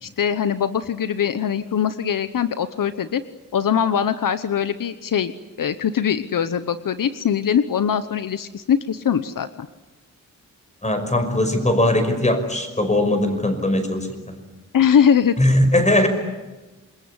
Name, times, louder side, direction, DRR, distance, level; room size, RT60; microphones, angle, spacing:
voice 1, 0.0-3.2 3.5-5.3 5.6-9.7 14.7-15.3, left 8 dB, 80° left, 12 dB, 1.1 m, -21 dB
voice 2, 10.8-14.4 15.4-16.1, left 1 dB, 20° left, 7 dB, 5.6 m, -20 dB
27.0 x 22.0 x 9.8 m, 1.1 s
wide cardioid pair, 90°, 32 cm